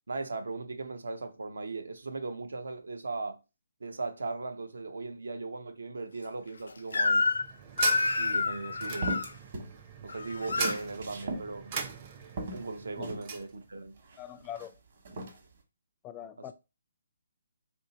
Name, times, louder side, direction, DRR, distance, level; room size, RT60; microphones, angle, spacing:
voice 1, 0.1-3.4 3.8-7.3 8.2-9.2 10.0-11.8 12.5-14.0 16.4-16.5, right 3 dB, 80° right, 0.7 m, -38 dB
Crying sobbing / Screech, 6.9-7.5 7.8-9.3 10.1-10.8, left 3 dB, 75° left, 0.5 m, -28 dB
sound 1, 6.9-13.5, right 6 dB, 35° right, 0.6 m, -40 dB
sound 2, 9.0-9.7 10.1-11.5 11.9-12.0 12.4-13.3 14.0-14.7 15.0-15.4, right 2 dB, 55° right, 1.2 m, -38 dB
voice 2, 14.2-14.7 16.0-16.5, left 10 dB, 20° left, 0.4 m, -42 dB
2.7 x 2.7 x 4.0 m
hypercardioid pair, 150°, 0 cm